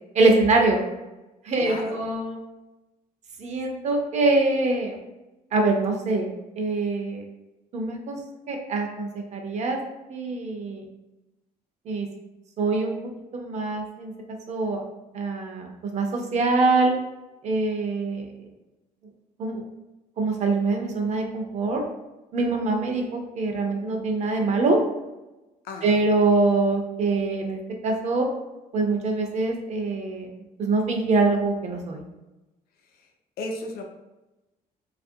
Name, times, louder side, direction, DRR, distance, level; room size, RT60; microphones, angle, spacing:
voice 1, 0.1-0.8 1.5-2.4 3.4-5.0 5.5-6.3 6.6-7.2 7.7-8.2 8.5-9.8 10.1-10.8 11.9-12.1 12.6-12.9 13.3-14.1 14.5-14.8 15.1-16.9 17.4-18.2 19.4-19.6 20.2-21.8 22.3-24.8 25.8-28.3 28.7-30.3 30.6-32.0, right 3 dB, 45° right, 2 dB, 0.5 m, -24 dB
voice 2, 1.5-2.0 25.6-26.0 32.9-33.1 33.4-33.8, left 2 dB, 75° left, 3 dB, 0.5 m, -35 dB
2.8 x 2.4 x 2.6 m, 1.0 s
cardioid pair, 140°, 16 cm